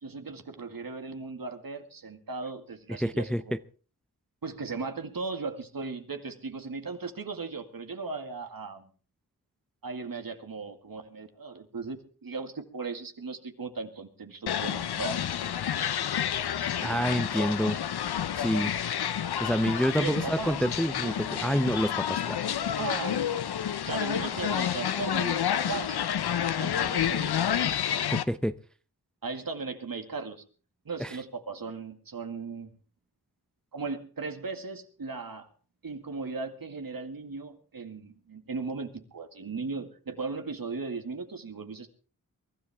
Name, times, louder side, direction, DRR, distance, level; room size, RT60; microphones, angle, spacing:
voice 1, 0.0-3.6 4.4-8.9 9.8-12.0 12.2-15.5 20.0-20.7 21.0-21.2 22.8-23.4 23.8-26.0 26.5-27.7 29.2-30.4 30.9-32.7 33.7-35.5 35.8-41.9, right 4 dB, 65° right, 2.0 m, -37 dB
voice 2, 2.9-3.6 16.8-17.8 18.4-18.7 19.4-22.4 28.1-28.6 31.0-31.1, equal, ahead, 0.6 m, -28 dB
sound 1, 14.5-28.2, left 9 dB, 85° left, 0.7 m, -29 dB
23.5 x 13.0 x 3.5 m
cardioid pair, 40°, 38 cm